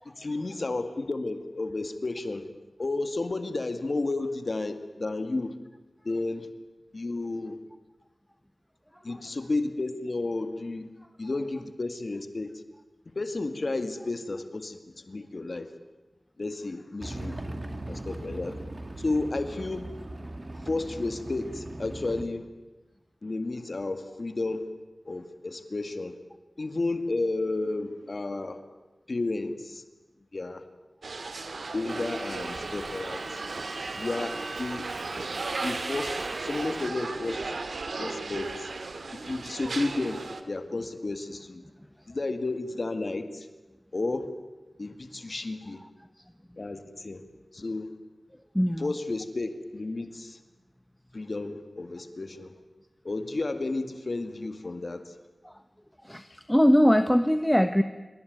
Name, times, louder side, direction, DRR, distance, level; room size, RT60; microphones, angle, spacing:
voice 1, 0.0-2.5 2.8-5.5 6.0-6.5 6.9-7.6 9.0-10.9 11.2-12.6 13.1-15.7 16.4-17.6 17.9-18.6 19.0-19.9 20.6-22.5 23.2-24.7 25.1-26.2 26.6-28.6 29.1-29.8 30.3-30.6 31.7-33.4 34.0-34.9 35.6-37.6 38.0-38.7 39.1-41.6 42.1-43.5 43.9-44.3 44.8-45.8 46.6-47.2 47.5-48.0 48.8-50.4 51.1-52.6 53.0-55.2 56.3-56.4, left 2 dB, 55° left, 9 dB, 2.1 m, -32 dB
sound 1, 17.0-22.2, right 1 dB, 40° right, 2.7 m, -39 dB
sound 2, 31.0-40.4, right 3 dB, 85° right, 2.2 m, -36 dB
Subway metro underground, 31.9-36.9, right 3 dB, 60° right, 1.0 m, -38 dB
voice 2, 48.3-48.9 55.4-55.6 56.0-57.8, equal, 5° left, 10 dB, 1.2 m, -24 dB
26.0 x 24.5 x 9.5 m, 1.1 s
wide cardioid pair, 65°, 0 cm